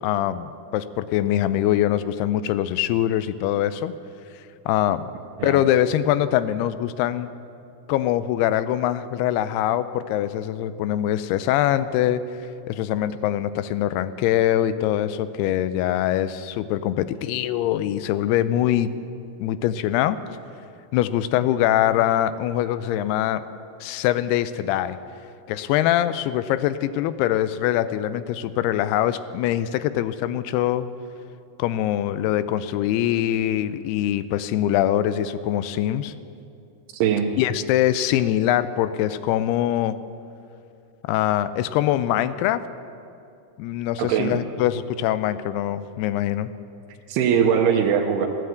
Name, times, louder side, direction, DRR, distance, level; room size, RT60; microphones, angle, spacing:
voice 1, 0.0-3.9 4.7-5.0 5.4-7.3 7.9-12.2 12.7-18.9 19.4-20.2 20.9-23.4 23.8-25.0 25.5-30.9 31.6-36.1 37.4-40.0 41.0-42.6 43.6-46.5, left 12 dB, 85° left, 14 dB, 2.6 m, -23 dB
voice 2, 36.9-37.3 44.0-44.4 47.1-48.3, right 7 dB, 85° right, 2 dB, 2.8 m, -21 dB
15.5 x 9.3 x 7.9 m, 2.5 s
omnidirectional pair, 4.6 m